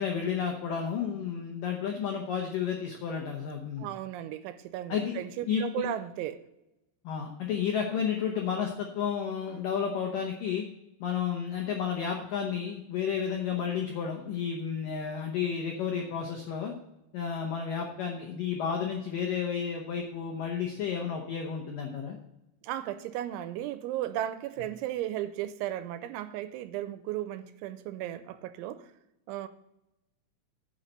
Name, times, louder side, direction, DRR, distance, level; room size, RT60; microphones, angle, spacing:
voice 1, 0.0-3.9 4.9-5.1 5.5-5.9 7.0-10.6 11.0-16.7 17.1-22.2, left 7 dB, 80° left, 1 dB, 1.9 m, -32 dB
voice 2, 3.8-6.4 22.6-28.9 29.3-29.5, right 13 dB, 85° right, 12 dB, 2.9 m, -35 dB
10.0 x 5.8 x 6.5 m, 0.90 s
omnidirectional pair, 5.5 m